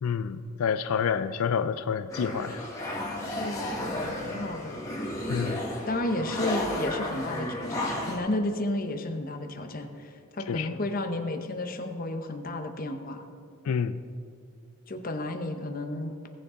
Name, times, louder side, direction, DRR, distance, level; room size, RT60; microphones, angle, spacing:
voice 1, 0.0-2.6 5.3-5.6 10.5-10.7 13.6-14.0, left 7 dB, 85° left, 11 dB, 0.4 m, -28 dB
sound 1, 2.1-8.2, left 1 dB, 15° left, 1.7 m, -33 dB
voice 2, 3.4-4.8 5.9-13.2 14.9-16.3, left 1 dB, 40° left, 6 dB, 0.8 m, -32 dB
17.5 x 6.9 x 3.7 m, 2.3 s
head